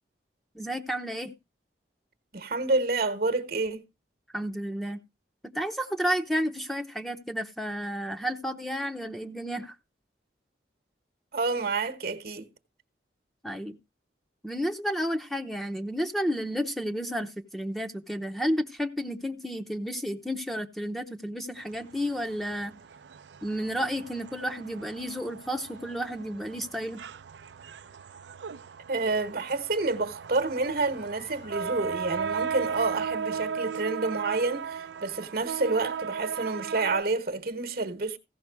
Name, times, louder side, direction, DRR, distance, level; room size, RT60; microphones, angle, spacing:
voice 1, 0.5-1.3 4.3-5.0 5.4-9.7 13.4-13.8 14.4-22.8 23.4-27.0, equal, ahead, 0.7 m, -31 dB
voice 2, 2.3-3.8 11.3-12.5 28.9-38.2, right 3 dB, 55° right, 1.1 m, -29 dB
sound 1, 21.6-37.0, right 6 dB, 80° right, 0.5 m, -37 dB
sound 2, 22.1-22.2 22.7-23.3 23.6-24.6 25.4-27.1 29.0-29.8 30.3-32.4, left 2 dB, 85° left, 4.2 m, -58 dB
15.5 x 5.9 x 4.6 m
head